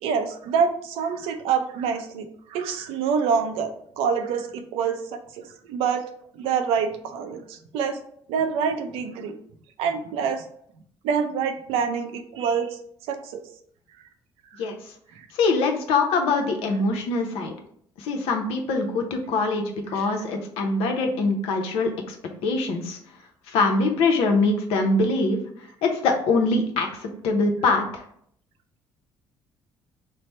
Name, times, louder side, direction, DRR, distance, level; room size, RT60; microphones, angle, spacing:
voice 1, 0.0-6.1 6.4-8.0 8.3-9.3 9.8-10.4 11.0-12.7 13.1-13.4 15.2-15.3 19.9-20.1, right 6 dB, 90° right, 7 dB, 0.5 m, -26 dB
voice 2, 15.3-17.5 18.0-22.2 22.4-23.0 23.5-25.4 25.8-28.0, left 3 dB, 85° left, 4 dB, 0.7 m, -23 dB
3.2 x 2.0 x 4.1 m, 0.64 s
cardioid pair, 85°, 10 cm